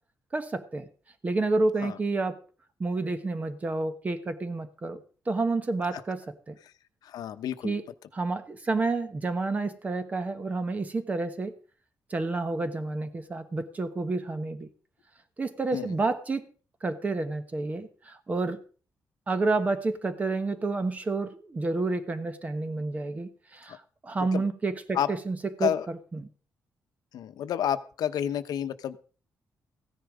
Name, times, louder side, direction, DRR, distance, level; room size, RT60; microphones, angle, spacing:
voice 1, 0.3-0.9 1.2-2.4 2.8-5.0 5.3-6.6 7.6-7.8 8.1-11.5 12.1-14.7 15.4-16.5 16.8-18.6 19.3-25.7 26.1-26.3, right 3 dB, 25° right, 10 dB, 1.2 m, -29 dB
voice 2, 7.0-7.8 15.7-15.9 23.7-23.8 24.3-24.4 24.9-25.1 25.6-25.9 27.1-29.0, left 10 dB, 90° left, 10 dB, 1.0 m, -30 dB
15.0 x 10.0 x 5.0 m, 0.39 s
wide cardioid pair, 165°, 6 cm